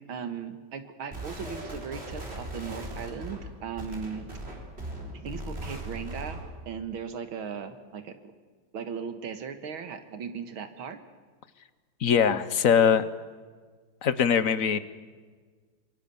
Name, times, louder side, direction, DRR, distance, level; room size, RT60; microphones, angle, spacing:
voice 1, 0.0-4.3 5.2-6.4 6.7-8.1 8.7-11.0, right 6 dB, 75° right, 9 dB, 2.4 m, -37 dB
sound 1, 1.1-6.6, right 1 dB, 30° right, 4.0 m, -39 dB
voice 2, 12.0-13.0 14.0-14.8, left 7 dB, 50° left, 15 dB, 1.1 m, -22 dB
26.0 x 23.0 x 7.1 m, 1.5 s
omnidirectional pair, 2.3 m